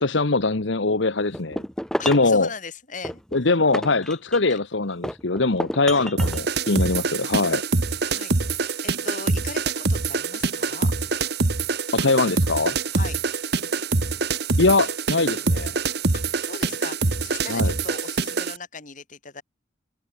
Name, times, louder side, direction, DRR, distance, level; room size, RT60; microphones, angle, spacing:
voice 1, 0.0-1.6 2.1-2.5 3.3-7.6 11.9-12.8 14.6-15.7 17.5-17.7, left 3 dB, 65° left, 1.2 m, -22 dB
sound 1, 1.3-2.4 3.0-4.6 5.0-6.4, equal, 5° left, 1.1 m, -30 dB
voice 2, 2.0-3.2 4.5-4.6 5.9-6.1 8.1-10.9 12.9-13.2 16.1-19.4, left 4 dB, 40° left, 4.5 m, -39 dB
sound 2, 6.2-18.6, right 3 dB, 55° right, 1.4 m, -25 dB
head